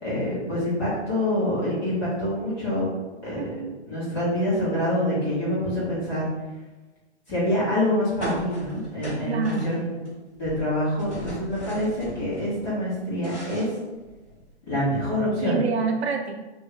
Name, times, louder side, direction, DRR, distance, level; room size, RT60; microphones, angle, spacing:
voice 1, 0.0-2.9 3.2-3.4 3.8-6.2 7.3-9.4 9.6-10.0 10.4-13.7 14.7-15.5, left 1 dB, 20° left, -10 dB, 1.3 m, -26 dB
voice 2, 3.4-3.8 9.3-9.9 15.4-16.3, right 5 dB, 65° right, 3 dB, 0.6 m, -27 dB
sound 1, 8.2-10.1 10.3-12.5 12.9-14.5, equal, ahead, 1.3 m, -36 dB
3.0 x 2.7 x 3.3 m, 1.1 s
hypercardioid pair, 170°, 35 cm